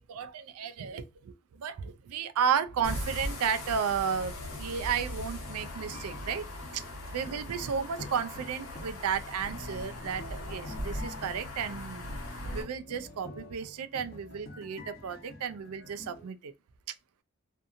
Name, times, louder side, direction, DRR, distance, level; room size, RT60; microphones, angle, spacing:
voice 1, 0.1-6.4 6.7-6.8 7.1-12.1 12.5-16.5, right 7 dB, 90° right, 0.4 m, -33 dB
sound 1, 2.7-16.3, left 1 dB, 40° left, 1.0 m, -48 dB
sound 2, 2.8-12.6, left 1 dB, 80° left, 1.0 m, -39 dB
2.6 x 2.5 x 2.4 m
head